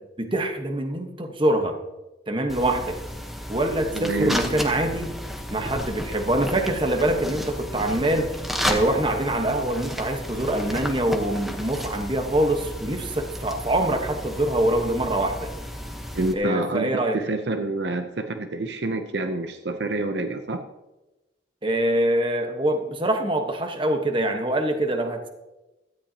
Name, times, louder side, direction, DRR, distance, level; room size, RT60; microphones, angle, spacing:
voice 1, 0.2-1.8 2.3-3.0 3.5-5.1 5.5-8.3 8.6-15.5 16.3-17.2 21.6-25.3, right 1 dB, 25° right, 5 dB, 1.2 m, -24 dB
sound 1, 2.5-16.3, equal, ahead, 1.0 m, -33 dB
voice 2, 3.9-4.4 16.1-20.7, right 2 dB, 65° right, 7 dB, 0.7 m, -27 dB
17.0 x 13.0 x 2.9 m, 1.0 s
head